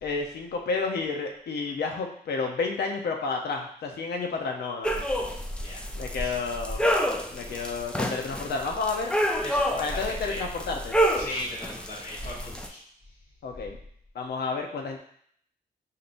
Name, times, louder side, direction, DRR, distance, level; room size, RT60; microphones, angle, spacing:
voice 1, 0.0-5.0 5.9-6.8 7.3-9.2 9.8-11.0 13.4-13.8 14.1-15.0, left 4 dB, 80° left, 2 dB, 0.7 m, -31 dB
sound 1, 4.8-12.7, equal, 5° left, 0.4 m, -29 dB
voice 2, 7.3-7.7 9.4-10.4 11.2-12.8, left 1 dB, 45° left, -10 dB, 1.2 m, -38 dB
5.2 x 2.8 x 2.5 m, 0.64 s
cardioid pair, 90°, 17 cm